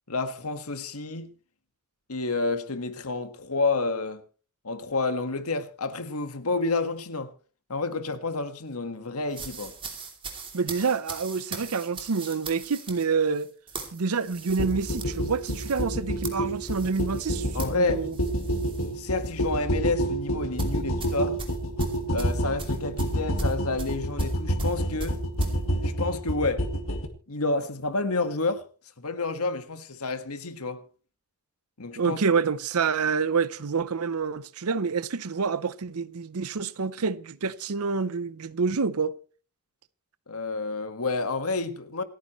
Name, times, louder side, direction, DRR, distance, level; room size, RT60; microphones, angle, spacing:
voice 1, 0.1-1.3 2.1-4.2 4.6-7.3 7.7-9.8 10.8-10.9 17.5-18.1 18.9-21.4 22.1-25.2 25.8-26.7 27.3-28.6 29.0-30.8 31.8-32.2 40.3-42.0, left 3 dB, 90° left, 1.6 m, -29 dB
sound 1, 9.3-18.9 19.2-19.5 20.6-25.6, right 3 dB, 25° right, 2.8 m, -39 dB
voice 2, 10.5-13.5 13.9-17.5 17.8-18.1 32.0-39.1, right 5 dB, 85° right, 0.7 m, -27 dB
sound 2, 14.6-27.1, equal, 70° left, 2.2 m, -28 dB
27.5 x 9.6 x 3.1 m
head